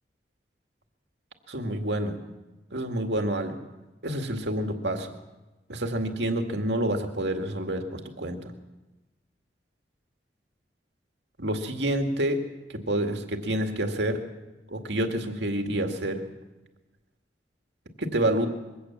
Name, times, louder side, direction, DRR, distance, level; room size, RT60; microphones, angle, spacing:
voice 1, 1.5-2.2 2.7-3.5 4.0-5.1 5.7-8.5 11.4-12.4 12.7-14.2 14.7-16.2 18.0-18.5, right 1 dB, 85° right, 4 dB, 2.2 m, -28 dB
22.5 x 17.0 x 7.4 m, 1.1 s
head